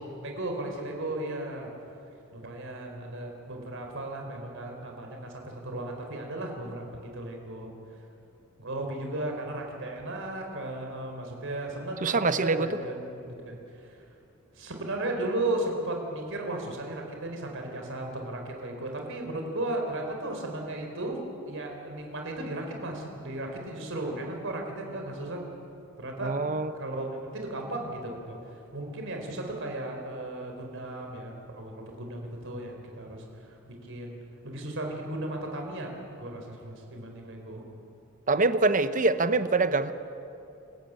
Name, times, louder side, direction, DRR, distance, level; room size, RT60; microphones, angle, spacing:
voice 1, 0.2-1.7 2.3-7.7 8.6-14.0 14.5-21.2 21.5-25.4 26.0-26.3 26.7-27.1 27.3-34.2 34.4-35.9 36.2-37.7, right 1 dB, 60° right, 2 dB, 4.1 m, -35 dB
voice 2, 12.0-12.8 26.2-26.7 38.3-39.9, right 3 dB, 35° right, 12 dB, 0.9 m, -24 dB
27.0 x 15.0 x 9.0 m, 2.8 s
head